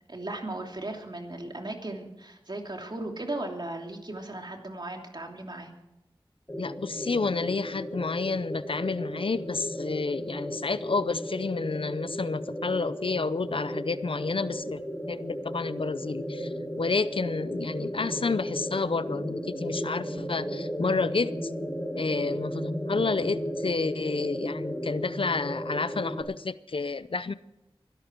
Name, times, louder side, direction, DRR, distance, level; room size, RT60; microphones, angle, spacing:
voice 1, 0.1-5.7, right 2 dB, 50° right, 2 dB, 2.8 m, -36 dB
sound 1, 6.5-26.2, equal, 20° left, 5.2 m, -35 dB
voice 2, 6.6-14.8 15.1-21.5 22.0-27.3, left 4 dB, 70° left, 15 dB, 0.6 m, -30 dB
23.5 x 12.0 x 4.6 m, 0.91 s
wide cardioid pair, 55°, 10 cm